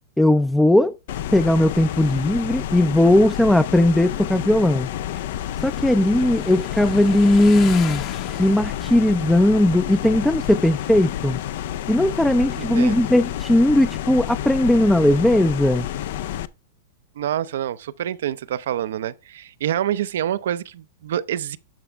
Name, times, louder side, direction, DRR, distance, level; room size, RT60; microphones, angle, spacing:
voice 1, 0.2-1.0 1.3-4.9 5.6-8.0 8.4-11.4 11.9-15.9, left 1 dB, 5° left, 0.4 m, -18 dB
sound 1, 1.1-16.5, left 11 dB, 65° left, 0.5 m, -29 dB
Motorcycle, 4.0-12.2, left 10 dB, 40° left, 0.9 m, -39 dB
voice 2, 12.6-13.0 17.2-21.6, right 11 dB, 75° right, 0.5 m, -27 dB
12.5 x 4.9 x 3.3 m
hypercardioid pair, 125°, 0 cm